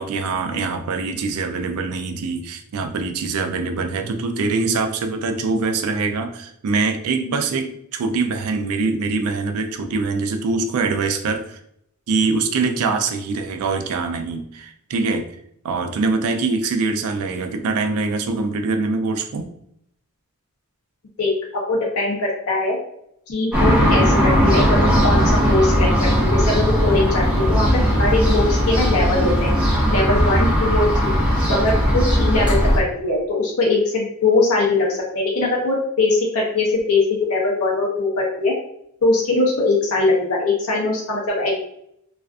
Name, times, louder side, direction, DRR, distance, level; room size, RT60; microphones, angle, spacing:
voice 1, 0.0-11.6 12.1-15.3 15.6-19.5, right 4 dB, 85° right, 7 dB, 0.4 m, -23 dB
voice 2, 21.2-22.8 23.3-24.8 25.0-25.2 25.5-29.5 29.9-31.2 31.5-38.5 39.0-41.6, left 2 dB, 75° left, -2 dB, 0.6 m, -21 dB
sound 1, 23.5-32.8, equal, 5° right, 0.5 m, -18 dB
2.4 x 2.3 x 2.4 m, 0.73 s
head